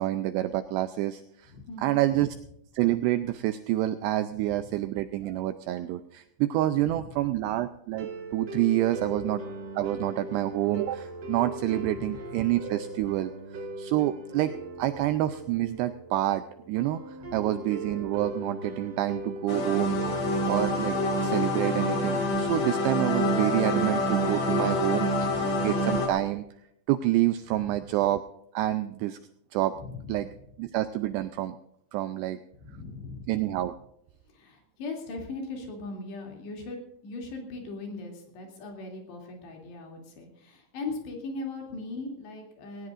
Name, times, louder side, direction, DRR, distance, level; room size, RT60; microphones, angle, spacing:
voice 1, 0.0-1.5 1.8-2.3 2.7-9.4 9.8-14.5 14.8-26.4 26.9-28.2 28.5-29.2 29.5-29.7 30.1-30.3 30.6-31.6 31.9-32.4 33.3-33.7, right 14 dB, 85° right, 10 dB, 2.4 m, -28 dB
voice 2, 1.5-2.0 4.3-4.6 6.8-7.1 9.0-9.2 11.8-12.1 17.2-17.5 19.9-20.2 25.0-25.7 27.5-27.8 29.7-30.3 32.6-33.3 34.3-36.8 37.0-42.9, left 3 dB, 65° left, 1 dB, 4.9 m, -40 dB
sound 1, 7.9-25.9, right 1 dB, 45° right, 2.1 m, -39 dB
sound 2, 19.5-26.1, left 1 dB, 40° left, 3.6 m, -27 dB
19.0 x 18.5 x 2.5 m, 0.78 s
omnidirectional pair, 5.4 m